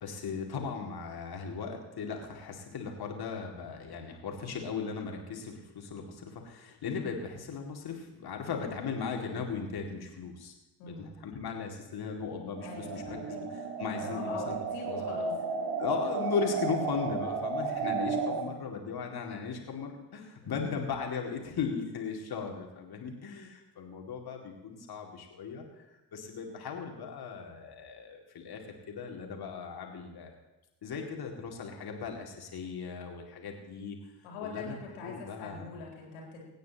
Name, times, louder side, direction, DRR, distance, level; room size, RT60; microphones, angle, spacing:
voice 1, 0.0-10.5 10.9-13.5 13.8-14.6 14.9-15.2 15.8-25.7 26.1-30.3 30.8-34.0 34.4-35.7, left 5 dB, 55° left, 1 dB, 2.5 m, -37 dB
voice 2, 10.8-11.1 12.6-13.4 14.0-15.3 18.2-18.5 20.4-20.7 34.2-36.4, left 3 dB, 75° left, -2 dB, 3.5 m, -43 dB
sound 1, 12.5-18.4, right 4 dB, 60° right, 1.7 m, -33 dB
24.5 x 9.3 x 3.0 m, 1.0 s
figure-of-eight pair, 40°, 46 cm